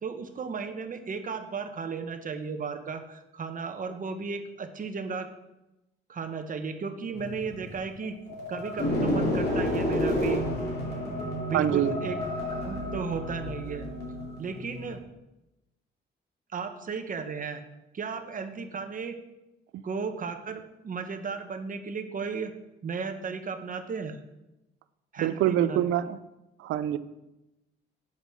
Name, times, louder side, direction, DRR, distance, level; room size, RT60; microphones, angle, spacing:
voice 1, 0.0-5.3 6.1-8.2 8.5-10.4 11.5-12.2 12.6-13.8 14.4-15.0 16.5-17.6 17.9-19.2 19.8-22.5 22.8-24.2 25.1-25.8, right 5 dB, 40° right, 7 dB, 1.1 m, -35 dB
sound 1, 7.2-14.9, left 1 dB, 55° left, 3.2 m, -30 dB
voice 2, 11.5-12.0 19.7-19.8 25.2-26.2 26.6-27.0, right 11 dB, 80° right, 14 dB, 0.5 m, -25 dB
8.2 x 5.2 x 6.2 m, 0.96 s
cardioid pair, 90°, 20 cm